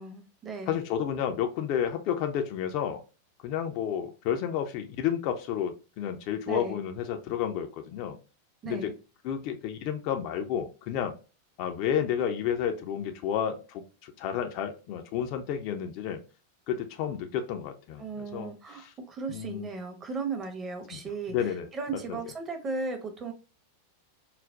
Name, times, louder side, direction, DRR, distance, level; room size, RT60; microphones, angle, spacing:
voice 1, 0.0-0.8 6.5-6.8 8.6-8.9 18.0-23.3, right 4 dB, 25° right, 0.7 m, -36 dB
voice 2, 0.7-3.0 3.4-8.2 8.6-8.9 9.2-11.1 11.6-16.2 16.7-18.0 18.3-18.5 18.8-18.9 19.3-19.7 20.9-21.0 21.3-21.7 22.1-22.2, left 9 dB, 45° left, 0.4 m, -31 dB
3.9 x 2.0 x 2.2 m
figure-of-eight pair, 90°, 0 cm